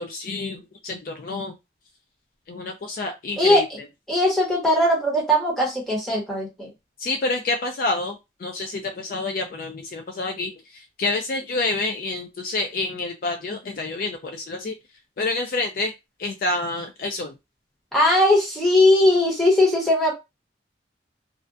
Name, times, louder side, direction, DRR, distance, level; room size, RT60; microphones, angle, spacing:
voice 1, 0.0-1.5 2.5-3.7 7.0-14.7 15.2-15.9 16.2-17.3, left 2 dB, 50° left, 5 dB, 0.3 m, -28 dB
voice 2, 4.1-6.7 17.9-20.1, left 1 dB, ahead, -4 dB, 0.9 m, -19 dB
2.4 x 2.1 x 2.5 m, 0.23 s
head